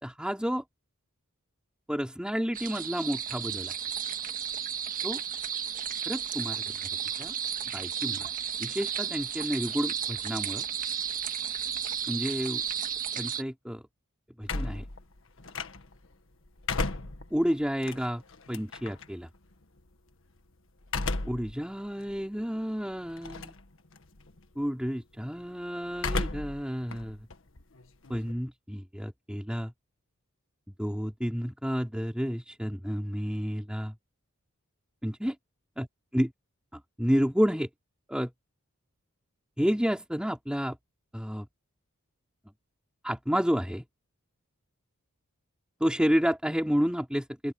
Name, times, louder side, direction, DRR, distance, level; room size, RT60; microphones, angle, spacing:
voice 1, 0.0-0.6 1.9-3.7 5.0-5.2 6.1-6.8 7.2-7.3 7.7-8.3 8.6-10.7 12.1-12.6 13.2-13.8 14.4-14.9 17.3-18.2 18.5-19.3 21.2-23.6 24.6-27.3 28.1-29.7 30.8-33.9 35.0-35.4 35.8-35.9 36.1-36.3 36.7-37.7 38.1-38.3 39.6-40.8 41.1-41.5 43.0-43.9 45.8-47.5, equal, 5° right, 4.2 m, -30 dB
sound 1, 2.5-13.4, right 8 dB, 40° right, 1.7 m, -33 dB
sound 2, 14.4-16.1 16.5-19.0 20.8-21.5 22.0-22.1 23.2-23.7 24.0-24.4 25.9-26.6 26.9-28.3, left 3 dB, 65° left, 1.6 m, -34 dB
open air
head